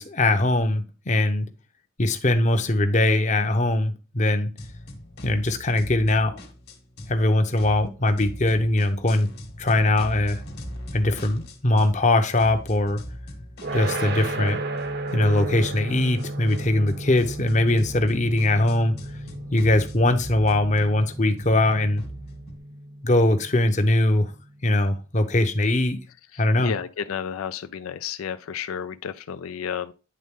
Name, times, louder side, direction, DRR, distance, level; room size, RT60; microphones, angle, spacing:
voice 1, 0.0-1.5 2.0-4.5 5.2-6.4 7.1-9.3 9.6-10.4 10.9-13.0 13.7-14.6 15.1-19.0 19.5-22.0 23.0-24.3 24.6-26.0 26.4-26.7, left 1 dB, 35° left, 0.8 m, -21 dB
sound 1, 4.6-7.2 7.5-12.1 12.4-22.6, equal, 50° left, 1.3 m, -41 dB
sound 2, 13.6-24.6, right 2 dB, 50° right, 0.7 m, -34 dB
voice 2, 26.6-29.9, left 7 dB, 90° left, 0.4 m, -31 dB
9.5 x 3.7 x 3.6 m
head